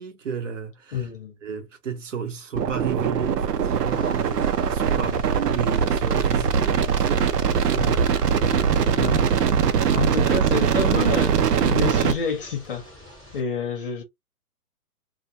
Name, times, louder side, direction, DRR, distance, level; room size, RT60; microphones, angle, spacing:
voice 1, 0.0-1.1 1.4-8.0, right 7 dB, 50° right, 0.8 m, -33 dB
voice 2, 0.9-1.3 4.9-5.2 7.7-8.0 8.4-8.6 8.9-9.3 9.9-12.9 13.3-14.0, left 6 dB, 35° left, 0.7 m, -29 dB
sound 1, 2.5-12.1, right 7 dB, 90° right, 0.6 m, -21 dB
sound 2, 3.9-13.4, left 2 dB, 5° right, 1.1 m, -45 dB
2.2 x 2.2 x 2.7 m
hypercardioid pair, 150°, 46 cm